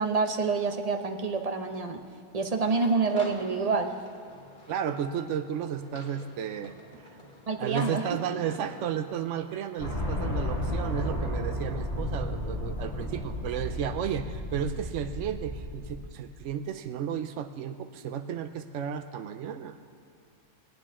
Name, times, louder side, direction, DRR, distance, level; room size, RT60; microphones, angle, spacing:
voice 1, 0.0-2.0 2.3-4.0 7.5-8.0, right 4 dB, 35° right, 5 dB, 0.7 m, -27 dB
sound 1, 2.5-9.6, left 1 dB, 40° left, 1.9 m, -47 dB
voice 2, 4.7-7.1 7.6-19.8, right 8 dB, 80° right, 9 dB, 0.9 m, -33 dB
sound 2, 9.8-16.0, left 1 dB, 25° left, 2.2 m, -33 dB
20.0 x 9.4 x 3.7 m, 2.4 s
omnidirectional pair, 1.2 m